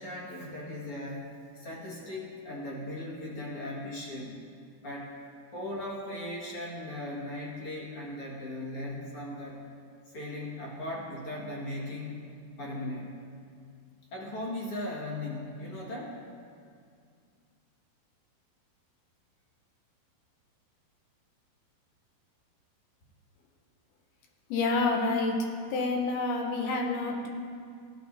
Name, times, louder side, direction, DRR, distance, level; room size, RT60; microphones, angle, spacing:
voice 1, 0.0-4.4 4.8-5.1 5.5-9.6 10.1-12.2 12.6-13.2 14.1-16.2, left 1 dB, 45° left, -5 dB, 2.4 m, -38 dB
voice 2, 24.5-25.4 25.7-27.3, left 3 dB, 80° left, 1 dB, 2.8 m, -28 dB
16.5 x 11.0 x 2.8 m, 2.2 s
omnidirectional pair, 4.5 m